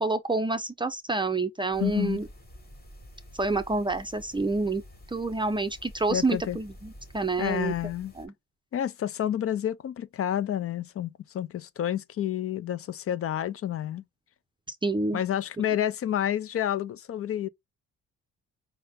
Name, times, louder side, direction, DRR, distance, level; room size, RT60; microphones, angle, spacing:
voice 1, 0.0-2.3 3.3-4.8 5.1-7.7 8.2-8.3 14.8-15.2, right 3 dB, 15° right, 0.5 m, -28 dB
sound 1, 1.7-8.3, equal, 30° left, 2.3 m, -49 dB
voice 2, 1.8-2.2 6.1-6.6 7.4-8.1 8.7-14.0 15.1-17.5, left 10 dB, 50° left, 0.5 m, -29 dB
5.5 x 2.2 x 3.4 m
cardioid pair, 90°, 30 cm